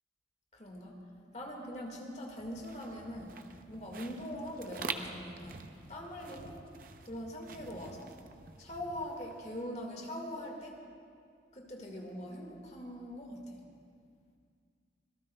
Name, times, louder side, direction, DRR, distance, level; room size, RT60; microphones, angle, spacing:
voice 1, 0.5-1.0 1.3-3.4 3.7-5.6 5.9-6.6 7.1-8.2 8.6-10.8 11.5-13.6, equal, 40° left, 0 dB, 1.8 m, -42 dB
sound 1, 2.4-9.7, right 5 dB, 50° right, 0.7 m, -46 dB
25.5 x 18.0 x 2.3 m, 2.2 s
head